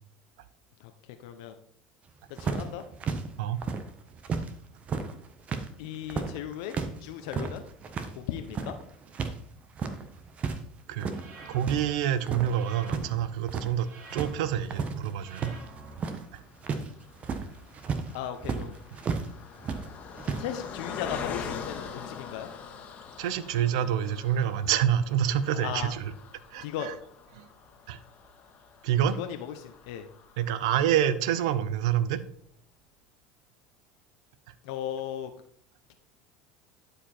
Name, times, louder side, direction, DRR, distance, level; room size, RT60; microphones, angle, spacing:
voice 1, 1.2-1.5 2.3-2.8 5.8-6.7 7.0-7.6 8.1-8.7 18.1-18.8 20.4-22.5 25.5-25.9 26.6-26.9 29.2-30.1 34.6-35.3, left 10 dB, 75° left, 7 dB, 0.7 m, -36 dB
sound 1, 2.4-4.5 4.8-9.4 9.6-10.6 10.9-11.8 12.1-13.1 13.3-13.8 14.1-19.3 19.6-20.5, right 5 dB, 40° right, 1.1 m, -33 dB
sound 2, 11.1-11.9 12.5-13.3 13.8-14.6 15.2-15.9, right 3 dB, 55° right, 2.5 m, -47 dB
voice 2, 11.5-15.5 16.3-16.4 23.2-26.0 26.5-26.9 27.4-27.5 27.9-28.0 28.8-29.2 30.4-32.2, right 10 dB, 80° right, 15 dB, 0.7 m, -27 dB
Car passing by, 15.8-31.3 31.8-31.9 32.1-32.3, left 6 dB, 45° left, 1.6 m, -44 dB
11.5 x 5.0 x 4.3 m, 0.63 s
supercardioid pair, 95°, 3 cm